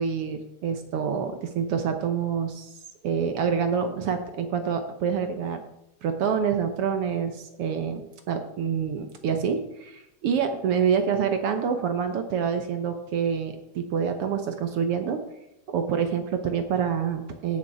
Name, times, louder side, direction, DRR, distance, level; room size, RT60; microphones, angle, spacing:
voice 1, 0.0-2.7 3.0-5.6 6.0-8.0 8.3-15.2 15.7-17.6, right 7 dB, 65° right, 7 dB, 1.5 m, -27 dB
17.0 x 6.6 x 4.9 m, 0.85 s
omnidirectional pair, 3.5 m